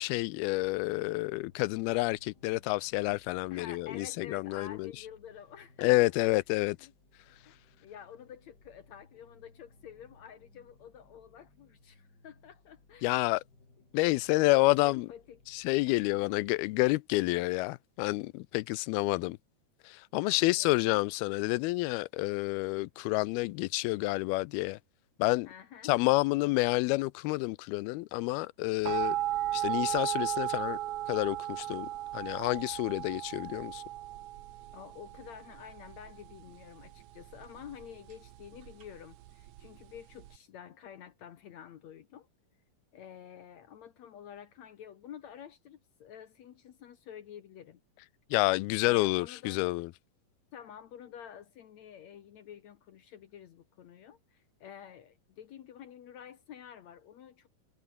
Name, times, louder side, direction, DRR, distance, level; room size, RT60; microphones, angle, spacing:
voice 1, 0.0-4.9 5.8-6.8 13.0-13.4 13.9-15.1 15.5-19.4 19.8-24.8 25.2-25.5 25.9-29.2 29.5-30.8 31.1-33.8 48.3-49.9, left 22 dB, 85° left, 2.5 m, -29 dB
sound 1, 0.6-16.6, left 2 dB, 25° left, 6.0 m, -63 dB
voice 2, 3.5-6.3 6.8-6.9 7.5-13.2 14.0-15.4 15.9-16.4 20.2-21.0 25.5-26.0 34.7-42.3 42.9-47.8 48.8-49.6 50.5-57.5, left 9 dB, 60° left, 2.0 m, -49 dB
sound 2, 28.8-40.4, right 14 dB, 70° right, 2.1 m, -36 dB
omnidirectional pair, 4.4 m